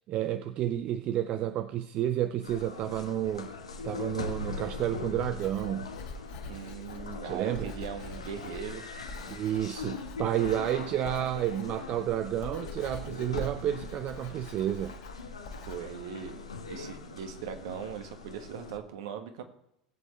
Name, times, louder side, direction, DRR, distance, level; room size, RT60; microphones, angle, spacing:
voice 1, 0.1-3.5 3.8-5.9 7.2-7.7 9.3-15.0, right 11 dB, 40° right, 0.6 m, -31 dB
sound 1, 2.4-18.8, left 4 dB, 80° left, 1.2 m, -41 dB
Writing, 5.3-15.8, left 2 dB, 50° left, 2.1 m, -45 dB
voice 2, 6.4-8.8 15.7-16.4 16.7-19.4, right 8 dB, 60° right, 1.6 m, -39 dB
20.0 x 8.3 x 3.2 m
figure-of-eight pair, 80°, 3 cm